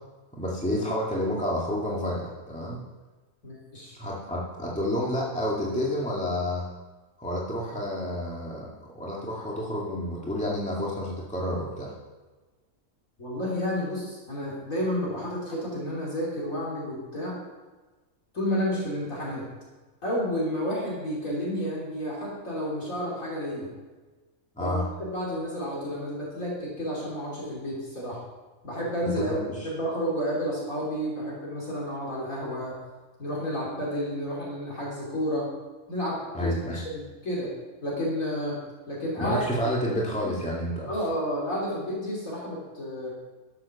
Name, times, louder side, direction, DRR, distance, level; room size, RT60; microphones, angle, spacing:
voice 1, 0.3-2.8 3.9-6.6 7.2-8.7 9.0-11.9 24.6-24.8 29.1-29.7 36.3-36.8 39.2-40.9, equal, 5° left, -5 dB, 2.1 m, -29 dB
voice 2, 3.4-3.9 13.2-17.4 18.3-19.4 20.0-23.7 24.6-28.2 28.6-29.4 29.6-32.7 33.2-35.5 35.9-37.5 37.8-38.6 38.9-39.4 39.9-40.3 40.9-43.1, equal, 70° left, -5 dB, 3.6 m, -31 dB
12.0 x 7.6 x 7.0 m, 1.3 s
omnidirectional pair, 1.4 m